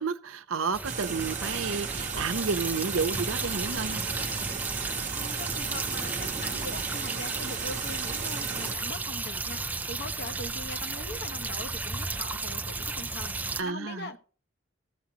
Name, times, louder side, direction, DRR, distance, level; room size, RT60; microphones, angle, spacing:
voice 1, 0.0-4.0 13.6-14.1, right 5 dB, 80° right, 0.8 m, -31 dB
sound 1, 0.7-13.6, right 3 dB, 10° right, 0.4 m, -34 dB
sound 2, 0.8-8.8, right 6 dB, 40° right, 0.9 m, -36 dB
voice 2, 5.1-14.2, left 2 dB, 55° left, 1.0 m, -41 dB
15.0 x 7.4 x 2.9 m
head